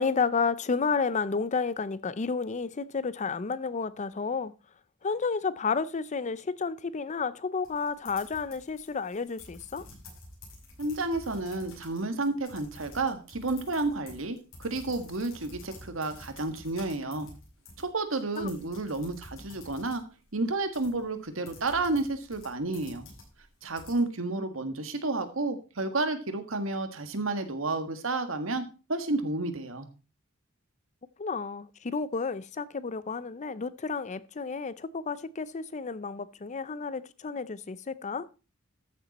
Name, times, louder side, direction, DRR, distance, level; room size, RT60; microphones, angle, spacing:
voice 1, 0.0-4.5 5.0-9.8 18.4-18.5 31.2-38.3, left 5 dB, 35° left, 0.5 m, -31 dB
sound 1, 7.6-24.0, left 2 dB, 75° left, 6.5 m, -50 dB
voice 2, 10.8-17.3 17.8-20.0 20.3-23.1 23.6-28.6 28.9-29.9, right 2 dB, 80° right, 1.7 m, -31 dB
13.5 x 7.0 x 4.2 m
head